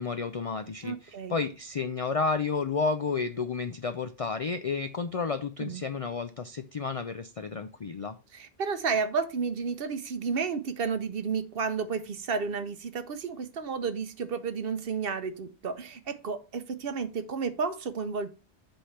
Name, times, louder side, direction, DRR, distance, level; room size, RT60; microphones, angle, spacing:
voice 1, 0.0-8.2, left 4 dB, 55° left, 10 dB, 0.4 m, -31 dB
voice 2, 0.8-1.4 5.6-5.8 8.3-18.3, right 5 dB, 55° right, 11 dB, 0.9 m, -32 dB
7.8 x 3.4 x 5.7 m, 0.32 s
omnidirectional pair, 1.2 m